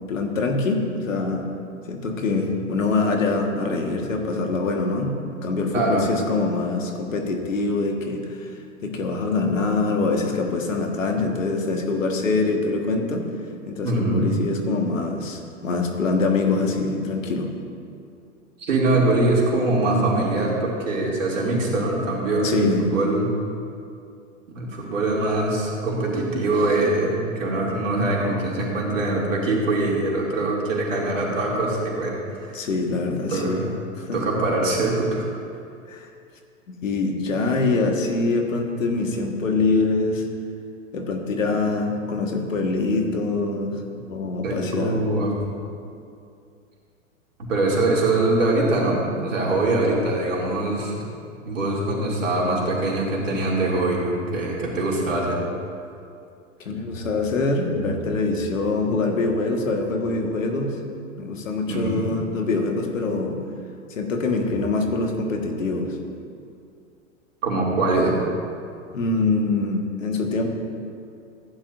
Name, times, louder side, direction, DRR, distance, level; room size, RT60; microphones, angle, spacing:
voice 1, 0.1-1.5 1.9-8.5 8.8-13.2 13.7-17.5 22.4-22.8 32.5-33.6 34.0-34.2 35.9-36.1 36.7-40.3 40.9-43.8 44.1-45.0 56.6-60.8 61.2-63.4 63.9-66.0 68.9-70.5, left 3 dB, 80° left, 2 dB, 1.6 m, -24 dB
voice 2, 5.7-6.1 13.8-14.3 18.6-23.3 24.5-32.2 33.3-33.7 34.1-35.3 44.4-45.5 47.5-51.1 51.5-55.4 61.7-62.0 67.4-68.1, right 2 dB, 75° right, -3 dB, 2.8 m, -23 dB
15.0 x 10.5 x 2.6 m, 2.4 s
hypercardioid pair, 105°, 38 cm